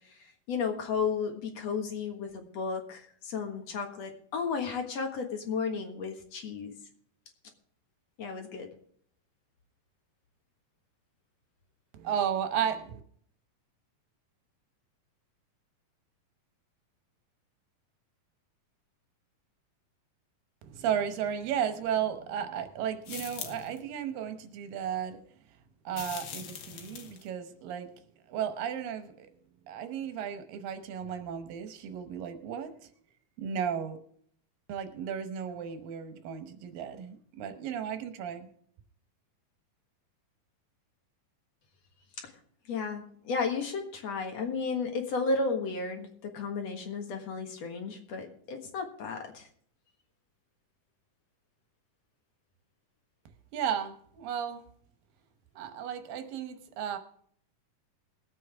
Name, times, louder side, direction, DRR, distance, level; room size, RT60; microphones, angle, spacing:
voice 1, 0.5-6.8 8.2-8.7 42.2-42.3 42.7-49.5, left 4 dB, 55° left, 3 dB, 2.5 m, -33 dB
voice 2, 11.9-13.0 20.6-25.2 25.9-27.9 28.3-29.3 29.7-32.7 33.4-34.0 34.7-38.5 53.5-54.6 55.6-57.0, right 8 dB, 85° right, 8 dB, 2.8 m, -34 dB
sound 1, 23.0-23.8 25.9-27.3, left 8 dB, 75° left, 2.8 m, -42 dB
21.0 x 8.6 x 3.5 m, 0.62 s
omnidirectional pair, 3.9 m